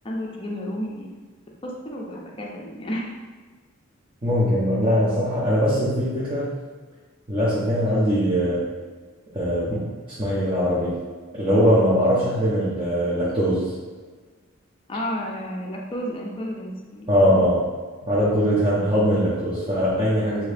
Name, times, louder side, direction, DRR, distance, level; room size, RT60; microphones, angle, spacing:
voice 1, 0.0-1.2 1.6-3.1 14.9-17.1 20.4-20.5, equal, 25° left, -2 dB, 0.5 m, -31 dB
voice 2, 4.2-6.5 7.3-8.6 9.3-9.9 10.2-11.0 11.3-13.6 17.1-17.6 18.0-20.5, equal, 25° right, -10 dB, 0.7 m, -21 dB
2.8 x 2.8 x 3.3 m, 1.4 s
head